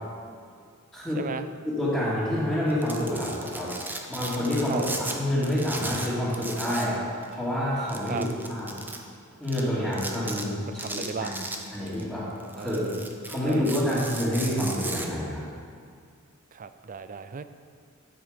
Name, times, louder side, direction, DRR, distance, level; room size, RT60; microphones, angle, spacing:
voice 1, 0.9-1.2 1.6-3.7 4.1-7.0 7.3-8.8 9.4-11.3 11.7-12.3 12.6-12.9 13.2-15.5, left 1 dB, 5° left, -12 dB, 2.6 m, -28 dB
Domestic sounds home sounds, 2.7-5.2 5.4-7.0 7.2-7.3 7.9-9.0 9.5-9.6 9.9-10.4 10.8-12.0 12.4-15.1, right 2 dB, 10° right, 0.8 m, -36 dB
voice 2, 10.8-11.4 12.5-12.9 13.5-14.0 16.5-17.4, right 5 dB, 40° right, 11 dB, 0.4 m, -35 dB
13.0 x 6.3 x 5.2 m, 2.2 s
head